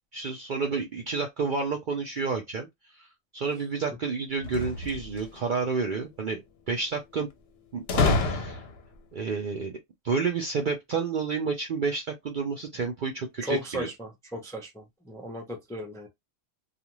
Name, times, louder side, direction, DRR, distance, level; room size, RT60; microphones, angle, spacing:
voice 1, 0.1-3.1 3.3-7.3 7.7-8.6 9.1-9.7 10.0-13.9, right 4 dB, 55° right, 0.5 m, -30 dB
sound 1, 4.4-5.4 7.9-8.9, left 3 dB, 60° left, 0.8 m, -27 dB
voice 2, 13.4-16.1, equal, 5° left, 0.5 m, -35 dB
2.5 x 2.4 x 3.0 m
omnidirectional pair, 1.3 m